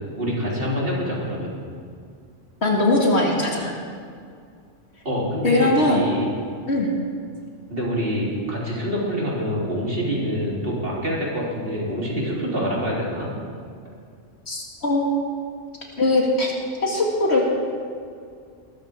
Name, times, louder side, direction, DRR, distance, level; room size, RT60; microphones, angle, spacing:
voice 1, 0.2-1.5 5.0-6.3 7.7-13.3, equal, 50° right, -5 dB, 3.8 m, -26 dB
voice 2, 2.6-3.7 5.4-6.0 6.7-6.9 14.5-15.2 16.0-16.5 16.8-17.5, left 2 dB, 60° left, -2 dB, 2.4 m, -20 dB
21.0 x 13.5 x 3.7 m, 2.2 s
omnidirectional pair, 1.3 m